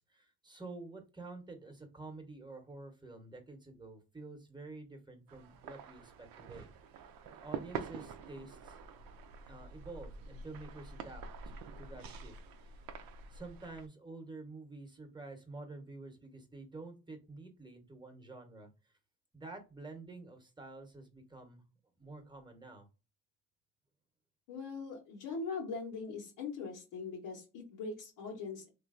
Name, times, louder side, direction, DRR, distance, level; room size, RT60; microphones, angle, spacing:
voice 1, 0.0-6.7 7.4-8.8 9.5-12.3 12.7-12.8 13.3-18.7 19.3-21.6 22.0-22.9, right 3 dB, 10° right, 5 dB, 1.0 m, -49 dB
sound 1, 5.3-13.9, right 6 dB, 70° right, 0.6 m, -46 dB
voice 2, 24.5-28.7, left 4 dB, 90° left, -4 dB, 1.1 m, -41 dB
3.1 x 2.5 x 2.4 m, 0.30 s
supercardioid pair, 75°, 36 cm